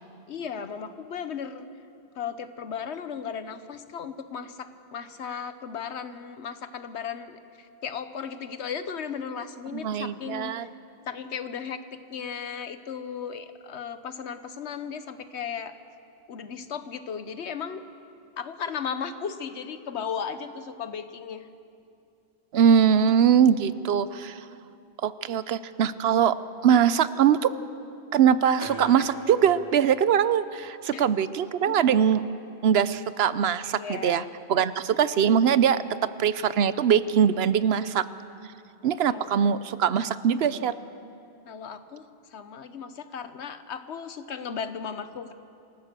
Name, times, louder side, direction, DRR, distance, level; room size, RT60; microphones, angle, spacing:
voice 1, 0.3-1.7 2.1-10.7 11.1-11.8 12.1-15.7 16.3-17.8 18.4-21.5 30.9-31.1 31.7-31.8 33.7-34.3 37.5-38.0 39.1-39.3 41.5-45.3, left 7 dB, 85° left, 11 dB, 1.2 m, -36 dB
voice 2, 9.7-10.7 22.5-24.4 25.0-26.4 26.6-27.5 28.1-32.2 32.6-34.2 34.5-38.1 38.8-40.8, right 8 dB, 70° right, 15 dB, 0.9 m, -22 dB
sound 1, 28.6-30.7, equal, 60° left, 2.8 m, -42 dB
26.0 x 14.5 x 6.8 m, 2.6 s
omnidirectional pair, 1.1 m